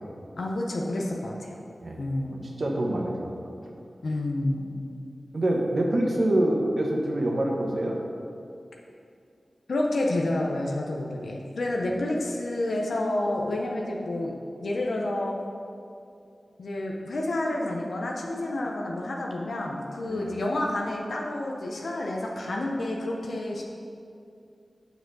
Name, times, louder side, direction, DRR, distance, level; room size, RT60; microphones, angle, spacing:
voice 1, 0.4-1.6 2.0-2.6 4.0-4.8 9.7-14.3 14.6-15.4 16.6-23.6, left 1 dB, 90° left, -1 dB, 0.8 m, -29 dB
voice 2, 2.6-3.3 5.3-8.0 20.1-20.3, right 1 dB, 65° right, -1 dB, 1.2 m, -25 dB
6.8 x 5.0 x 6.2 m, 2.5 s
wide cardioid pair, 70°, 0 cm